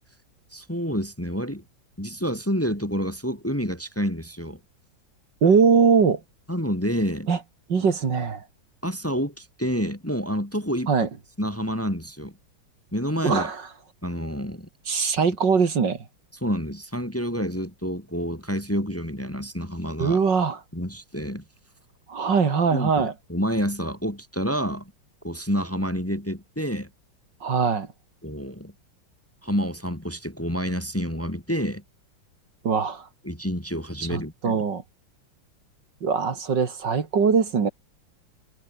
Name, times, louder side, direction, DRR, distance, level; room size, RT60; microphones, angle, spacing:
voice 1, 0.5-1.6 2.0-4.6 6.5-7.3 8.8-10.9 11.4-12.3 12.9-13.5 14.0-14.7 16.4-20.2 20.7-21.4 22.7-24.9 25.2-26.9 28.2-28.7 29.4-31.8 33.2-34.6, equal, 5° left, 2.3 m, -28 dB
voice 2, 5.4-6.2 7.3-7.4 7.7-8.4 10.9-11.1 13.2-13.6 14.9-16.0 20.0-20.6 22.1-23.1 27.4-27.9 32.6-33.1 34.1-34.8 36.0-37.7, right 5 dB, 65° right, 2.8 m, -21 dB
omnidirectional pair, 2.1 m